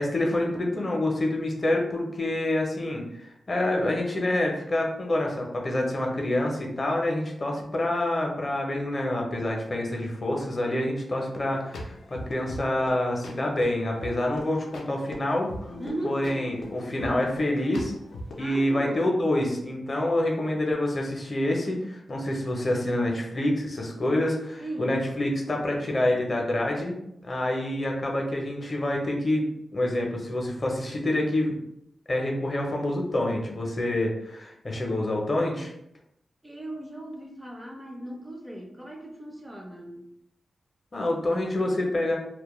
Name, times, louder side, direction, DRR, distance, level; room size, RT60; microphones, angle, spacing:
voice 1, 0.0-15.8 16.0-17.9 18.4-29.4 29.7-31.6 32.1-35.7 40.9-42.2, left 1 dB, 40° left, 0 dB, 0.5 m, -27 dB
sound 1, 11.4-18.4, left 1 dB, 90° left, 0.4 m, -41 dB
voice 2, 15.8-16.2 18.4-19.1 24.6-25.0 36.4-40.1, right 1 dB, 10° right, 1 dB, 0.4 m, -37 dB
2.1 x 2.0 x 2.9 m, 0.79 s
wide cardioid pair, 90°, 0 cm